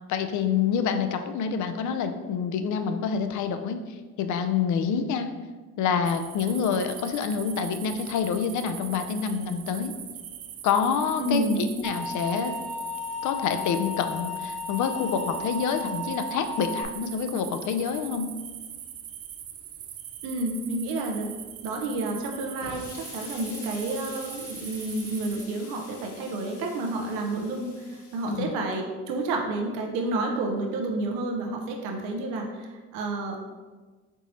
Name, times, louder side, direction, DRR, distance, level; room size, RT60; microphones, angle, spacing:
voice 1, 0.1-5.3 5.8-9.9 10.6-12.5 13.2-18.3 28.3-28.5, left 6 dB, 60° left, 8 dB, 0.6 m, -27 dB
sound 1, 6.0-25.4, right 10 dB, 45° right, 0.4 m, -42 dB
voice 2, 11.2-11.7 20.2-21.3 21.6-33.4, right 2 dB, 75° right, 1 dB, 0.8 m, -30 dB
sound 2, 11.8-16.8, left 2 dB, 5° left, 0.9 m, -34 dB
Explosion, 22.6-28.4, left 3 dB, 75° left, 1.1 m, -46 dB
4.5 x 4.0 x 3.0 m, 1.3 s
supercardioid pair, 75°, 34 cm